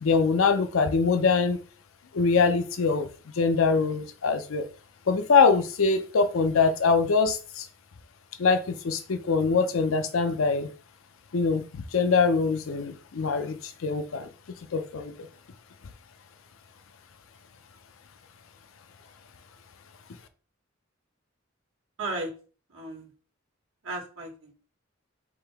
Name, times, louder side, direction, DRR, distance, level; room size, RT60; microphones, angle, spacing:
voice 1, 0.0-1.6 2.1-3.1 3.4-4.7 5.1-7.7 8.4-10.7 11.3-14.3 14.7-15.3, left 4 dB, 80° left, 0.5 m, -23 dB
voice 2, 22.0-22.3 22.7-23.1 23.8-24.5, right 2 dB, 80° right, 1.3 m, -34 dB
3.7 x 2.8 x 4.6 m
head